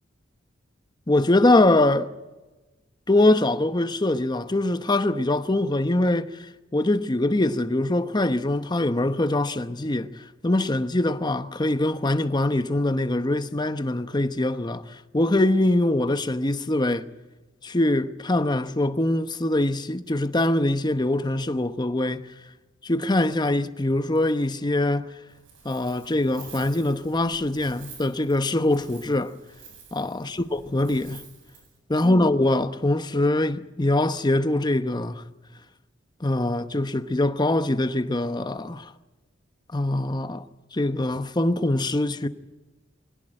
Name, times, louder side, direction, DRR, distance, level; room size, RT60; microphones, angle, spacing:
voice 1, 1.1-2.1 3.1-6.4 6.7-10.1 10.4-14.8 15.1-17.0 17.6-22.2 22.8-25.1 25.6-29.3 29.9-31.2 31.9-35.2 36.2-38.9 39.7-40.4 40.7-42.3, left 1 dB, 20° left, 0.9 m, -23 dB
Wind, 25.3-31.8, right 5 dB, 90° right, 7.8 m, -49 dB
22.5 x 17.5 x 8.9 m
head